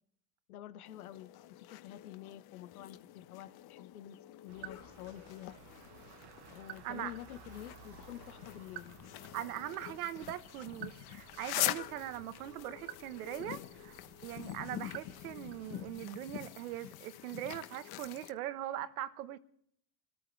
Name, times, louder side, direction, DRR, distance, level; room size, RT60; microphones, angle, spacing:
voice 1, 0.5-5.6 6.5-9.0 14.7-14.9, left 13 dB, 90° left, 1.3 m, -49 dB
sound 1, 0.9-18.3, left 14 dB, 60° left, 1.3 m, -44 dB
sound 2, 4.5-15.9, right 10 dB, 65° right, 1.5 m, -53 dB
voice 2, 9.3-19.4, right 13 dB, 85° right, 1.3 m, -41 dB
27.5 x 13.5 x 3.4 m
hypercardioid pair, 75°, 42 cm